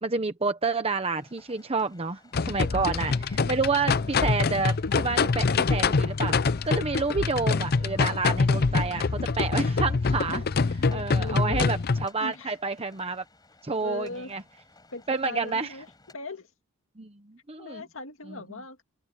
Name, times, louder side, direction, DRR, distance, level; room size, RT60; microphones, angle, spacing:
voice 1, 0.0-2.2 2.5-6.4 6.6-13.2 13.6-14.4 15.1-15.7 17.0-17.8 18.3-18.4, right 4 dB, 30° right, 1.0 m, -29 dB
sound 1, 1.1-16.1, left 2 dB, 20° left, 7.6 m, -57 dB
sound 2, 2.3-12.1, left 4 dB, 50° left, 0.6 m, -25 dB
voice 2, 11.2-11.7 12.2-12.6 12.9-13.0 13.8-14.3 14.9-16.5 17.6-18.8, left 2 dB, 75° left, 2.3 m, -39 dB
head